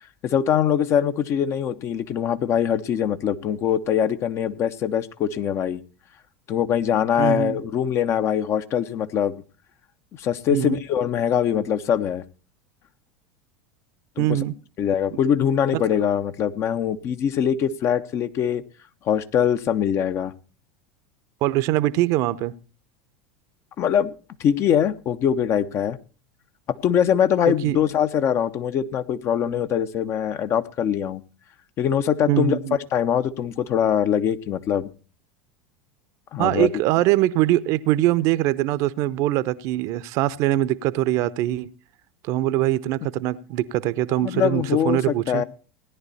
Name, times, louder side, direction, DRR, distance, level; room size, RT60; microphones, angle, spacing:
voice 1, 0.2-5.8 6.5-9.4 10.2-12.2 14.2-14.4 14.8-18.6 19.1-20.3 23.8-24.1 24.4-26.0 26.8-31.2 31.8-32.6 32.9-34.9 36.3-36.7 44.2-45.4, left 9 dB, 45° left, 1.1 m, -22 dB
voice 2, 7.2-7.6 10.5-10.8 14.2-14.5 15.7-15.8 21.4-22.5 27.6-27.8 32.3-32.8 36.4-41.7 42.2-45.4, right 15 dB, 55° right, 0.8 m, -22 dB
17.0 x 10.5 x 4.2 m
hypercardioid pair, 85°, 7 cm